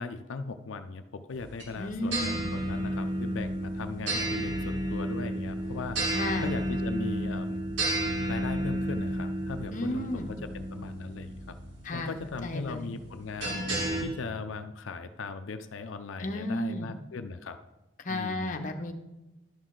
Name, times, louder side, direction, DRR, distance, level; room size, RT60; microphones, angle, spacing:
voice 1, 0.0-6.0 6.4-8.0 8.3-11.6 11.9-13.6 14.0-17.6 18.1-18.5, left 4 dB, 85° left, 8 dB, 0.5 m, -38 dB
sound 1, 1.3-14.0, right 1 dB, 70° right, 2.8 m, -32 dB
voice 2, 1.8-2.5 6.1-6.5 9.7-10.3 11.8-12.1 12.4-12.9 16.2-16.9 18.0-18.9, left 1 dB, 40° left, 5 dB, 0.8 m, -33 dB
11.0 x 6.3 x 3.8 m, 1.0 s
head